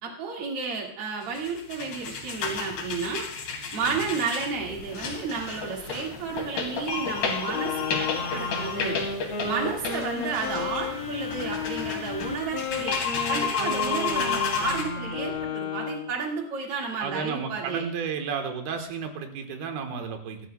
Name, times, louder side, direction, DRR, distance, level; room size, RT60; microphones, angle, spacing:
voice 1, 0.0-3.3 3.7-9.0 9.4-13.0 13.3-17.9, right 5 dB, 45° right, 0 dB, 2.4 m, -32 dB
sound 1, 1.2-14.8, left 5 dB, 80° left, 4.3 m, -31 dB
sound 2, 4.6-15.4, left 3 dB, 45° left, 3.2 m, -46 dB
Wind instrument woodwind instrument, 7.5-16.1, left 4 dB, 60° left, 1.3 m, -33 dB
voice 2, 17.0-20.4, right 6 dB, 75° right, 5 dB, 3.1 m, -32 dB
24.5 x 12.5 x 2.2 m, 0.67 s
omnidirectional pair, 4.6 m